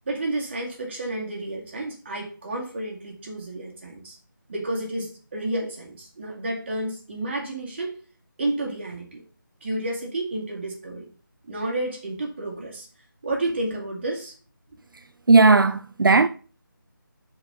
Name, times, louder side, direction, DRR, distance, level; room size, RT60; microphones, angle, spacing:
voice 1, 0.1-4.2 4.5-7.9 8.4-9.2 9.6-11.1 11.5-12.9 13.2-14.3, right 1 dB, 30° right, 1.9 m, -30 dB
voice 2, 15.3-16.3, right 3 dB, 70° right, 0.4 m, -16 dB
5.9 x 4.8 x 5.5 m
figure-of-eight pair, 165°, 12 cm